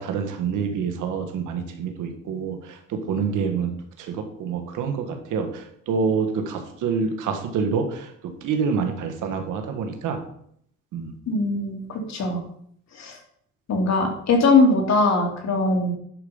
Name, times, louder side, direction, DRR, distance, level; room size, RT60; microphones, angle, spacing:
voice 1, 0.0-10.2 10.9-11.1, right 5 dB, 85° right, 5 dB, 1.6 m, -27 dB
voice 2, 11.3-12.4 12.9-13.2 13.7-15.9, left 3 dB, 60° left, 2 dB, 2.5 m, -21 dB
11.0 x 5.1 x 5.6 m, 0.67 s
cardioid pair, 90°, 30 cm